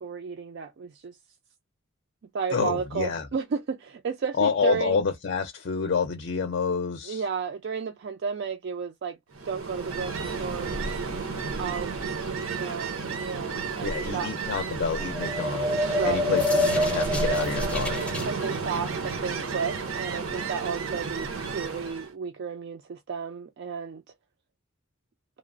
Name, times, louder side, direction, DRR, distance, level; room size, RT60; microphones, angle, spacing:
voice 1, 0.0-1.2 2.3-5.0 7.1-9.2 9.5-11.1 11.6-14.3 15.8-16.3 18.3-24.0, right 6 dB, 55° right, 0.4 m, -33 dB
voice 2, 2.5-3.3 4.4-7.2 13.8-18.0, left 5 dB, 50° left, 0.4 m, -28 dB
Ocean, 9.3-22.1, right 4 dB, 80° right, 0.7 m, -32 dB
sound 1, 15.0-18.3, left 1 dB, 5° left, 0.6 m, -26 dB
2.9 x 2.0 x 2.4 m
head